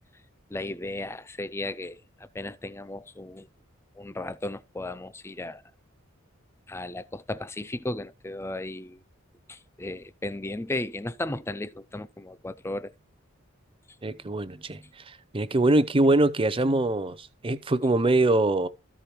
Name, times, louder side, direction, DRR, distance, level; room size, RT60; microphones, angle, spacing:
voice 1, 0.5-3.5 4.0-5.6 6.7-9.0 9.5-12.9, left 2 dB, 10° left, 0.4 m, -35 dB
voice 2, 14.0-14.8 15.3-18.7, right 2 dB, 25° right, 0.7 m, -23 dB
13.5 x 5.0 x 4.4 m
head